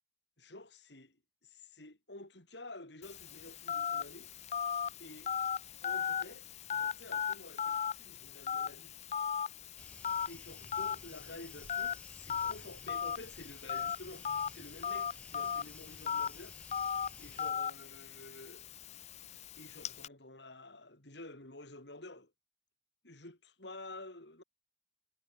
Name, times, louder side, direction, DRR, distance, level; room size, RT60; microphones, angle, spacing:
voice 1, 0.4-1.2 1.4-4.3 5.0-5.3 5.8-8.9 10.3-16.6 17.2-18.7 19.6-22.3 23.0-24.4, left 2 dB, 65° left, 4.5 m, -51 dB
Telephone, 3.0-20.1, left 8 dB, 35° left, 0.4 m, -38 dB
sound 1, 9.8-17.5, left 1 dB, 5° left, 7.8 m, -55 dB
head